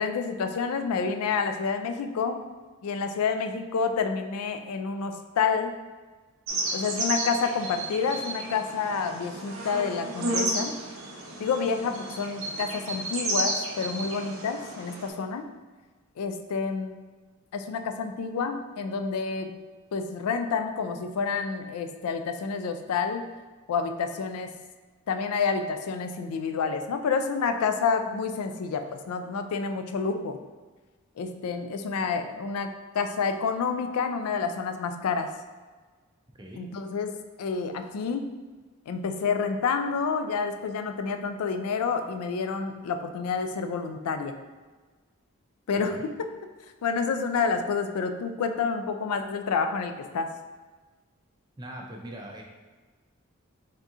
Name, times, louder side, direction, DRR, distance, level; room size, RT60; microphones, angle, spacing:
voice 1, 0.0-2.4 2.8-5.7 6.7-10.7 11.4-15.5 16.2-17.0 17.5-19.6 19.9-23.2 23.7-24.5 25.1-30.4 31.2-35.3 36.6-38.3 38.9-44.3 45.7-46.1 46.8-50.3, left 5 dB, 85° left, 7 dB, 0.4 m, -29 dB
sound 1, 6.5-15.1, right 1 dB, 75° right, 0.7 m, -32 dB
voice 2, 51.6-52.4, right 1 dB, 20° right, 0 dB, 0.4 m, -41 dB
3.5 x 2.8 x 3.6 m, 1.4 s
head